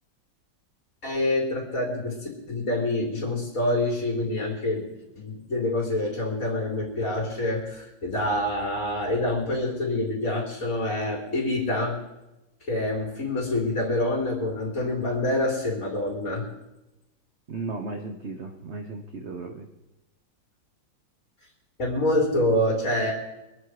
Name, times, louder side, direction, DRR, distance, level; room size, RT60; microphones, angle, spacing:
voice 1, 1.0-12.0 12.6-16.5 21.8-23.1, left 1 dB, 35° left, -3 dB, 3.7 m, -26 dB
voice 2, 17.5-19.7, right 3 dB, 45° right, 5 dB, 0.9 m, -35 dB
23.5 x 9.6 x 4.9 m, 0.98 s
omnidirectional pair, 2.3 m